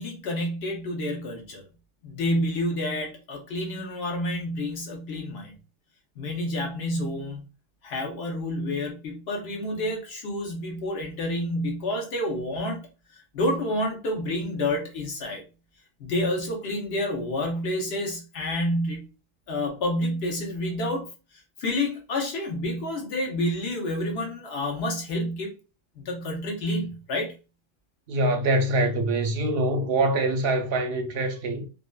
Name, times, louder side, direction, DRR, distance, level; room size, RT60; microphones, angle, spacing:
voice 1, 0.0-1.6 2.0-5.5 6.2-7.4 7.8-12.8 13.1-15.4 16.0-19.0 19.5-21.1 21.6-25.5 26.0-27.3, left 1 dB, 60° left, 1.0 m, -29 dB
voice 2, 28.1-31.7, right 2 dB, 60° right, 0.7 m, -24 dB
2.6 x 2.5 x 2.2 m
omnidirectional pair, 1.3 m